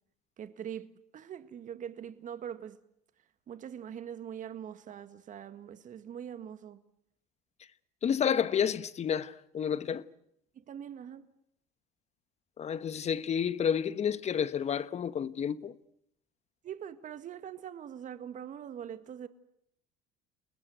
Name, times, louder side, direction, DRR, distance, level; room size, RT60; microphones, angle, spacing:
voice 1, 0.4-2.8 3.5-6.8 10.6-11.2 16.6-19.3, right 9 dB, 45° right, 2.0 m, -43 dB
voice 2, 8.0-10.0 12.6-15.7, left 8 dB, 35° left, 1.3 m, -30 dB
30.0 x 19.5 x 9.6 m
supercardioid pair, 100°, 19 cm